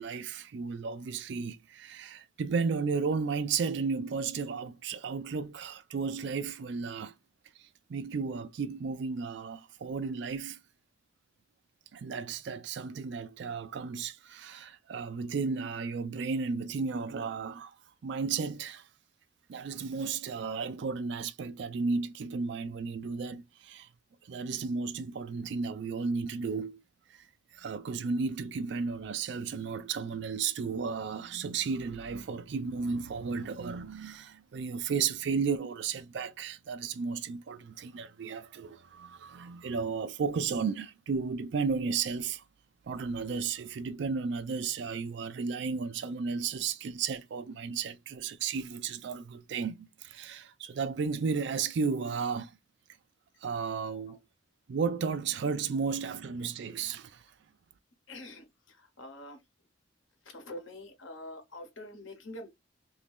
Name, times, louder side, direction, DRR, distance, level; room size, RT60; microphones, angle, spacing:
voice 1, 0.0-7.1 7.6-10.6 11.9-17.8 18.0-18.9 19.5-23.9 24.2-26.8 27.1-27.3 27.5-42.4 42.9-52.6 53.4-54.2 54.7-57.3, right 5 dB, 60° right, 0.4 m, -34 dB
voice 2, 58.1-59.4 60.2-62.5, left 1 dB, 80° left, 1.1 m, -46 dB
2.9 x 2.7 x 3.5 m
head